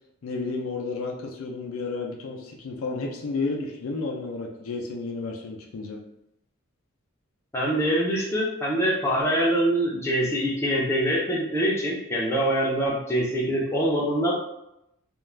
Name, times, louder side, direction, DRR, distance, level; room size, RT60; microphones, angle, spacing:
voice 1, 0.2-6.0, left 3 dB, 70° left, 1 dB, 0.4 m, -32 dB
voice 2, 7.5-14.3, right 1 dB, 10° left, -5 dB, 0.5 m, -24 dB
2.4 x 2.2 x 3.2 m, 0.83 s
head